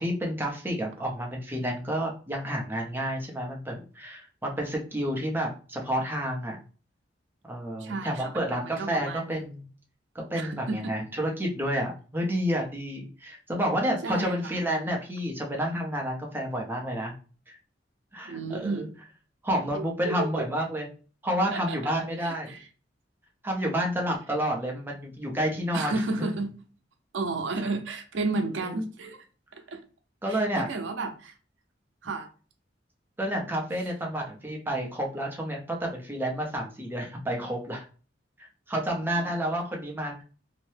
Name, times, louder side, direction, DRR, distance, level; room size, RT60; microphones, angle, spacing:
voice 1, 0.0-6.6 7.5-9.7 10.1-17.1 17.5-17.6 18.1-18.9 19.4-20.9 21.2-22.6 23.4-26.3 30.2-30.7 33.2-37.8 38.4-40.2, equal, 10° right, 0.6 m, -30 dB
voice 2, 7.8-9.4 10.3-10.8 14.0-14.6 18.3-18.8 19.8-20.4 21.5-21.9 22.2-22.6 25.7-26.6 27.1-29.2 29.5-29.8 30.3-31.3 32.0-32.3 39.0-39.1, right 3 dB, 80° right, 0.5 m, -32 dB
2.7 x 2.1 x 3.2 m
head